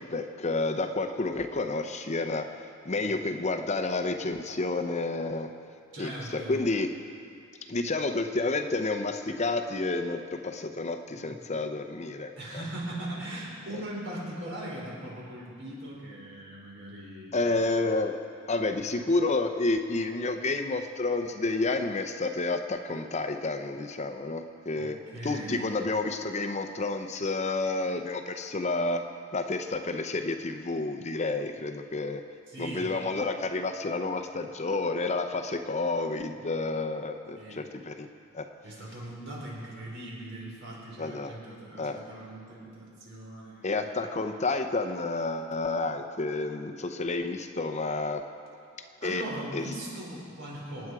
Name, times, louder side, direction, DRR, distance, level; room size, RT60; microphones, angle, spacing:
voice 1, 0.0-5.5 6.0-6.9 7.7-12.3 17.3-18.2 18.5-29.0 29.3-32.2 32.6-38.1 38.3-38.4 41.0-41.3 41.8-42.0 43.6-48.2 49.0-49.2 49.5-49.6, left 3 dB, 35° left, 7 dB, 0.7 m, -30 dB
voice 2, 5.9-6.6 11.1-11.3 12.4-17.3 24.7-25.7 32.5-32.9 37.4-37.6 38.6-44.0 49.0-50.9, right 1 dB, 60° right, -4 dB, 4.8 m, -40 dB
26.5 x 9.5 x 4.8 m, 2.5 s
head